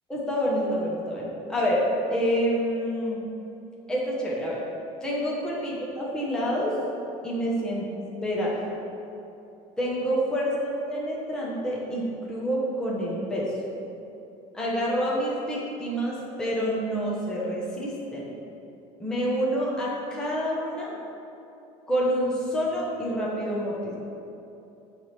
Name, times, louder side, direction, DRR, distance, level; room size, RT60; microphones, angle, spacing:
voice 1, 0.1-3.2 3.9-4.6 5.0-6.7 7.2-7.8 8.2-8.6 9.8-13.5 14.5-18.3 19.0-20.9 21.9-23.9, equal, 5° left, -6 dB, 1.0 m, -27 dB
10.0 x 3.4 x 5.9 m, 2.8 s
cardioid pair, 175°, 13 cm